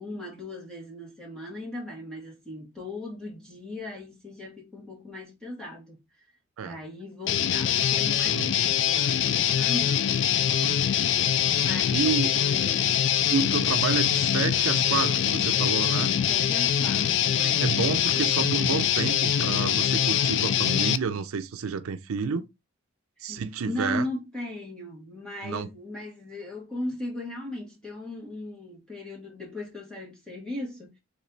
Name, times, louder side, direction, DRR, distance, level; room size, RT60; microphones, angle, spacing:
voice 1, 0.0-6.0 6.6-10.1 11.6-12.8 16.3-18.5 23.2-30.9, left 2 dB, 5° left, 1.4 m, -38 dB
Guitar, 7.3-21.0, left 9 dB, 55° left, 0.3 m, -24 dB
voice 2, 10.5-10.8 11.9-12.3 13.3-16.1 17.6-22.5 23.2-24.1 25.4-25.7, right 6 dB, 80° right, 0.5 m, -30 dB
3.6 x 3.1 x 3.9 m
head